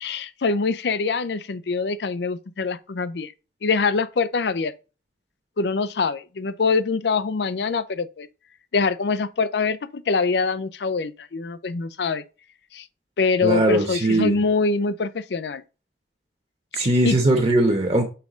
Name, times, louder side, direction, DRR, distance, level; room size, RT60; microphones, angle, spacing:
voice 1, 0.0-3.3 3.6-4.7 5.6-8.3 8.7-12.2 12.7-12.8 13.2-15.6 16.7-17.2, left 4 dB, 65° left, 0.5 m, -24 dB
voice 2, 13.4-14.4 16.7-18.1, right 1 dB, 35° right, 1.0 m, -20 dB
5.7 x 3.6 x 5.0 m
head